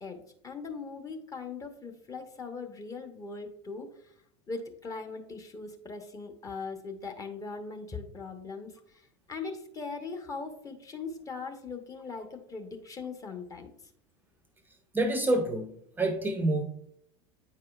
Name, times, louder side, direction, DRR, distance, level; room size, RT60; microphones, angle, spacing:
voice 1, 0.0-4.1 4.5-13.7, left 4 dB, 20° left, 4 dB, 1.0 m, -40 dB
voice 2, 14.9-16.6, right 2 dB, 10° right, 7 dB, 0.6 m, -27 dB
8.9 x 4.8 x 2.4 m, 0.70 s
figure-of-eight pair, 80°, 15 cm